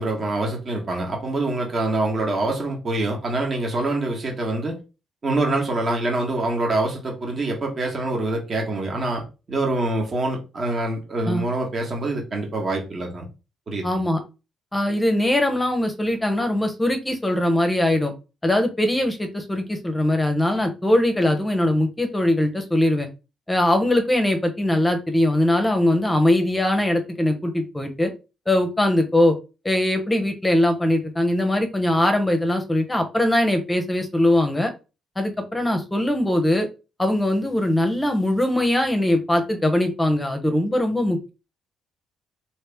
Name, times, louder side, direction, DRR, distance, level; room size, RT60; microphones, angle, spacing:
voice 1, 0.0-4.8 5.2-13.2 13.7-14.0, right 2 dB, 40° right, 1.3 m, -25 dB
voice 2, 13.8-14.2 14.7-18.1 18.4-23.1 23.5-28.1 28.5-29.4 29.6-34.7 35.2-36.7 37.0-41.3, left 1 dB, 15° left, 0.8 m, -21 dB
3.2 x 2.8 x 3.4 m
cardioid pair, 90°, 0 cm